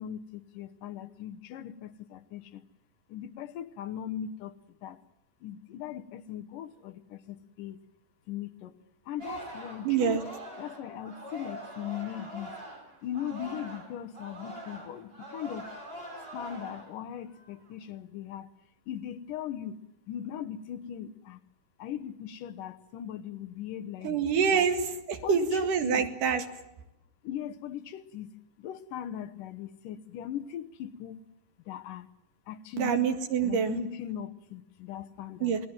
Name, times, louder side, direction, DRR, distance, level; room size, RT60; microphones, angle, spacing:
voice 1, 0.0-2.6 3.1-4.5 4.8-5.0 5.4-7.8 8.3-8.7 9.1-10.3 10.6-12.5 13.0-15.7 16.3-18.5 18.9-19.8 20.1-21.4 21.8-24.3 24.5-24.7 25.2-26.1 27.2-28.3 28.6-31.2 31.7-32.1 32.5-33.1 33.4-35.6, left 10 dB, 85° left, 9 dB, 2.7 m, -39 dB
Singing, 9.2-13.9 14.1-16.9 17.3-17.7, right 1 dB, 30° right, 6.1 m, -43 dB
voice 2, 9.8-10.2 24.0-26.4 32.8-33.8 35.4-35.6, right 7 dB, 80° right, 6 dB, 3.5 m, -26 dB
27.0 x 20.0 x 7.4 m, 0.87 s
omnidirectional pair, 3.7 m